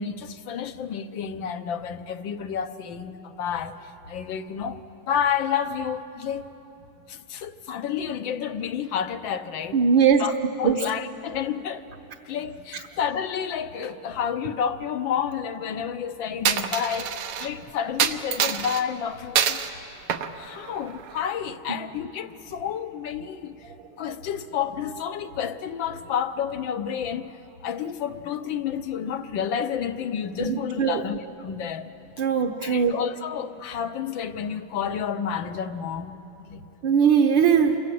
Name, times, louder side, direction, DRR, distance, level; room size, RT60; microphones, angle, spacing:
voice 1, 0.0-3.8 4.1-6.5 7.1-9.8 10.2-10.3 10.6-11.8 12.2-19.6 20.3-23.7 24.0-27.3 27.6-31.9 32.6-36.2 36.5-36.6, left 8 dB, 65° left, 10 dB, 1.6 m, -30 dB
voice 2, 9.7-10.3 10.6-10.8 30.4-31.0 32.2-33.0 36.8-37.8, right 7 dB, 65° right, 3 dB, 1.7 m, -20 dB
Coin (dropping), 16.4-17.5 18.0-18.8 19.4-19.7 20.1-21.2, right 8 dB, 80° right, 1.9 m, -25 dB
28.0 x 25.5 x 7.7 m, 3.0 s
omnidirectional pair, 2.4 m